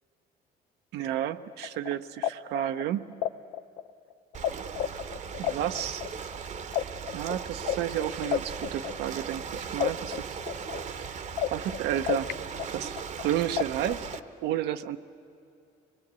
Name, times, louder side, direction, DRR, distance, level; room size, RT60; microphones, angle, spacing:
voice 1, 0.9-3.1 5.4-6.0 7.1-10.3 11.5-12.3 12.7-14.1 14.4-15.0, right 11 dB, 80° right, 9 dB, 0.7 m, -31 dB
sound 1, 1.5-4.5 4.8-9.4 9.8-12.3 12.6-14.2, left 11 dB, 80° left, 0.6 m, -31 dB
Ocean, 4.3-14.2, right 6 dB, 45° right, 0.9 m, -38 dB
24.5 x 21.0 x 8.2 m, 2.5 s
cardioid pair, 110°, 17 cm